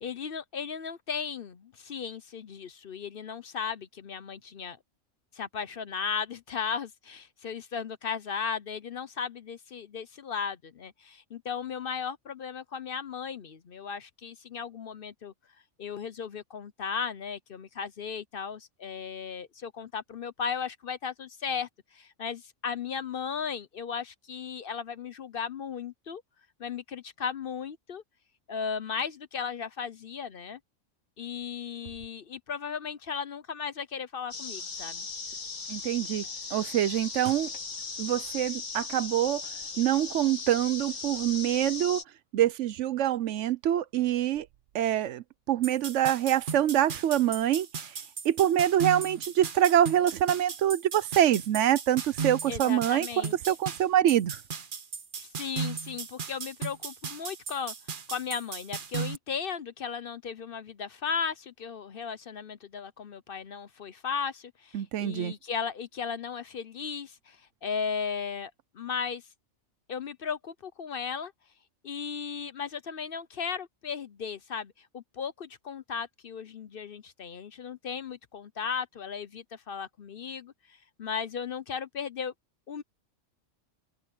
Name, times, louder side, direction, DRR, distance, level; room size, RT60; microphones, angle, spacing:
voice 1, 0.0-4.8 5.3-15.3 15.8-26.2 26.6-28.0 28.5-30.6 31.2-35.1 52.5-53.5 55.2-57.7 58.1-69.2 69.9-71.3 71.8-82.3 82.7-82.8, left 6 dB, 55° left, 0.8 m, -36 dB
sound 1, 34.3-42.0, left 4 dB, 75° left, 2.5 m, -38 dB
voice 2, 35.7-36.3 36.5-37.5 38.0-39.4 39.8-42.0 42.3-44.5 44.7-47.7 48.2-54.4 64.7-65.3, right 11 dB, 75° right, 1.0 m, -25 dB
sound 2, 45.6-59.2, right 5 dB, 45° right, 1.1 m, -37 dB
omnidirectional pair, 1.3 m